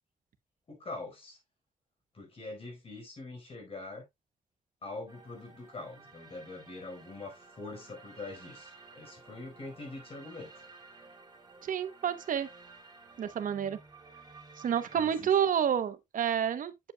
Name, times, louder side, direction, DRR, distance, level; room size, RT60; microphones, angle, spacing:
voice 1, 0.7-1.4 2.1-4.1 4.8-10.5 14.9-15.3, left 2 dB, 45° left, 4.4 m, -44 dB
sound 1, 5.1-15.2, right 4 dB, 30° right, 3.0 m, -54 dB
voice 2, 11.6-12.5 13.2-13.8 14.6-16.9, right 8 dB, 80° right, 0.9 m, -29 dB
8.5 x 7.9 x 2.2 m
wide cardioid pair, 145°, 14 cm